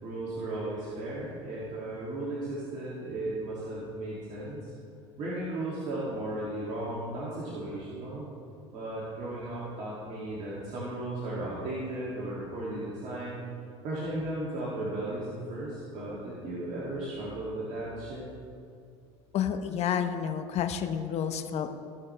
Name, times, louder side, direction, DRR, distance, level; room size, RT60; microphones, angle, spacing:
voice 1, 0.0-4.6 5.2-8.3 8.7-13.4 13.8-18.2, right 1 dB, 55° right, -7 dB, 2.4 m, -35 dB
voice 2, 19.3-21.7, left 8 dB, 50° left, 8 dB, 0.8 m, -30 dB
15.5 x 6.3 x 3.3 m, 2.4 s
hypercardioid pair, 80°, 14 cm